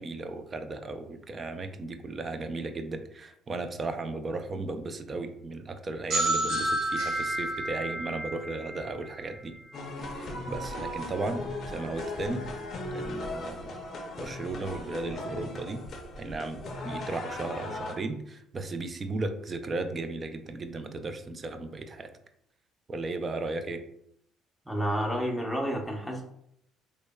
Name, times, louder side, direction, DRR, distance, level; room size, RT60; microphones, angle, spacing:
voice 1, 0.0-9.5 10.1-12.5 12.9-13.8 14.2-15.9 16.2-22.1 22.9-23.8, right 2 dB, 35° right, 8 dB, 0.3 m, -35 dB
sound 1, 6.1-9.7, right 1 dB, 65° right, 1.1 m, -30 dB
sound 2, 9.7-18.0, left 1 dB, 55° left, 0.5 m, -37 dB
voice 2, 24.7-26.2, equal, ahead, 0 dB, 0.6 m, -30 dB
3.1 x 2.0 x 2.2 m, 0.73 s
supercardioid pair, 75°, 0 cm